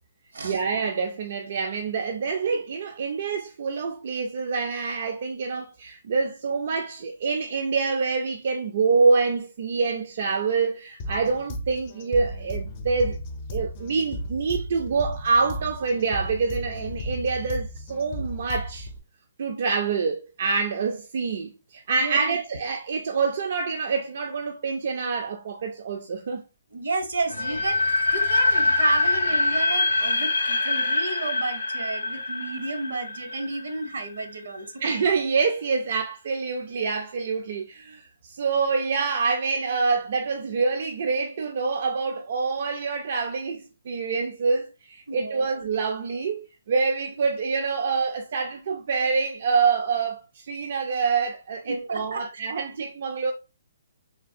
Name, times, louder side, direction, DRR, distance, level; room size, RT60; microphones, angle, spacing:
voice 1, 0.4-13.2 13.5-18.9 19.4-26.4 34.8-53.3, right 4 dB, 60° right, 0.4 m, -26 dB
sound 1, 11.0-19.0, equal, 40° left, 0.6 m, -35 dB
voice 2, 22.0-22.4 26.7-34.7 45.1-45.5 51.6-52.2, right 3 dB, 80° right, 0.7 m, -31 dB
sound 2, 27.3-34.2, left 2 dB, 90° left, 0.6 m, -24 dB
3.3 x 2.2 x 2.5 m
hypercardioid pair, 145°, 0 cm